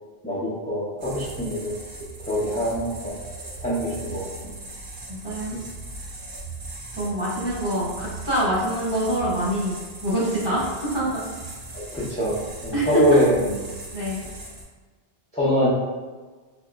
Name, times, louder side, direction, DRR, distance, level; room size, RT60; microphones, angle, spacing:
voice 1, 0.2-1.7 2.3-3.2 3.6-4.3 5.5-5.6 11.7-13.5 15.3-15.7, equal, 10° left, -9 dB, 0.4 m, -23 dB
sound 1, 1.0-14.6, right 2 dB, 55° right, 0.8 m, -38 dB
voice 2, 5.1-5.6 7.0-9.8 10.0-10.6 10.9-11.2 12.7-13.2 13.9-14.3, equal, 25° right, -9 dB, 1.0 m, -25 dB
3.5 x 2.8 x 2.3 m, 1.3 s
omnidirectional pair, 1.1 m